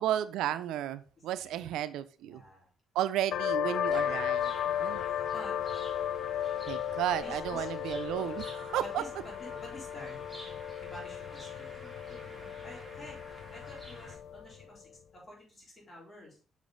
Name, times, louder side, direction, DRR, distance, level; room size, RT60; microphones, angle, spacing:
voice 1, 0.0-2.4 2.9-4.5 4.8-5.0 6.7-9.0, right 12 dB, 90° right, 0.4 m, -33 dB
voice 2, 2.2-2.7 3.9-4.2 5.3-5.6 7.0-7.7 8.1-8.3 8.7-13.2 13.5-16.4, left 1 dB, 25° left, 4.0 m, -50 dB
sound 1, 3.3-14.6, left 9 dB, 70° left, 0.4 m, -35 dB
sound 2, 3.9-14.1, equal, ahead, 2.6 m, -51 dB
6.2 x 5.1 x 3.8 m
cardioid pair, 90°, 0 cm